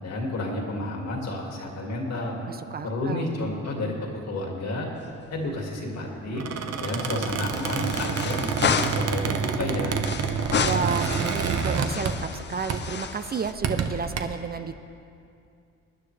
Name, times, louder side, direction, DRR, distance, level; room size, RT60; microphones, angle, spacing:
voice 1, 0.0-2.4 2.8-4.9 5.3-6.4 6.8-10.0, left 2 dB, 60° left, 0 dB, 2.4 m, -31 dB
voice 2, 2.5-3.3 10.6-14.7, right 6 dB, 30° right, 10 dB, 0.5 m, -31 dB
sound 1, 5.0-5.7 6.0-6.1 7.5-9.2 10.0-13.5, left 6 dB, 35° left, 0.6 m, -31 dB
Squeak, 6.3-12.4 12.7-13.0 13.5-14.2, right 6 dB, 55° right, 1.0 m, -28 dB
21.0 x 9.9 x 3.3 m, 2.5 s
cardioid pair, 90°, 30 cm